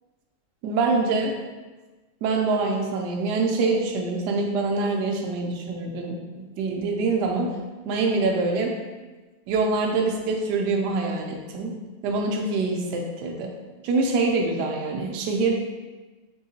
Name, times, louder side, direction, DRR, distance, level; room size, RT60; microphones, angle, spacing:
voice 1, 0.6-1.3 2.2-7.5 7.8-8.7 9.5-11.7 12.0-13.5 13.8-15.5, right 3 dB, 80° right, 1 dB, 0.9 m, -25 dB
3.7 x 3.5 x 2.8 m, 1.2 s
omnidirectional pair, 2.4 m